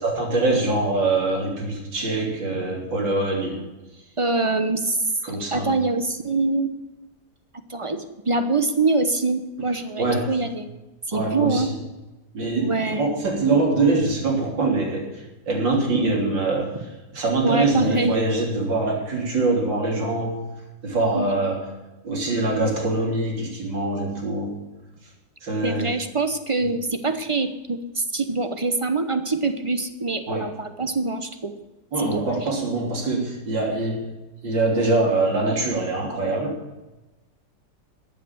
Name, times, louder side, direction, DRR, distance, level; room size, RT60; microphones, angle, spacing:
voice 1, 0.0-3.6 5.2-5.8 10.0-10.3 11.1-11.7 12.3-16.8 17.1-20.4 20.8-21.6 22.0-24.5 25.4-25.9 26.6-26.7 30.3-30.5 31.9-34.0 34.4-36.6, right 2 dB, 80° right, 0 dB, 3.9 m, -23 dB
voice 2, 4.2-5.1 5.5-6.7 7.7-10.7 11.1-11.7 12.6-13.1 17.4-18.2 21.1-21.3 25.6-31.5 32.0-32.5, right 3 dB, 35° right, 8 dB, 0.5 m, -24 dB
14.0 x 8.4 x 8.7 m, 1.1 s
omnidirectional pair, 2.0 m